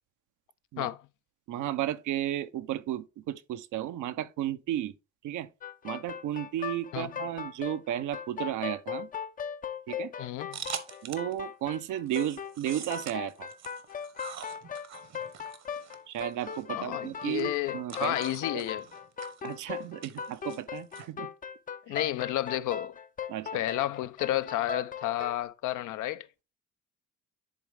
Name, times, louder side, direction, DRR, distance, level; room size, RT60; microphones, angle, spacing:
voice 1, 1.5-4.9 5.2-5.5 5.8-9.1 9.9-10.1 11.0-13.5 16.1-18.2 18.5-18.6 19.4-21.3 21.9-22.0 23.3-23.6, right 12 dB, 80° right, 0.7 m, -33 dB
sound 1, 5.6-25.4, left 7 dB, 30° left, 0.4 m, -39 dB
voice 2, 10.2-10.6 16.7-18.9 21.9-23.0 23.5-26.3, left 14 dB, 80° left, 0.6 m, -31 dB
sound 2, 10.5-11.4 11.7-21.1, right 8 dB, 60° right, 1.1 m, -45 dB
10.5 x 4.0 x 3.4 m
cardioid pair, 90°, 30 cm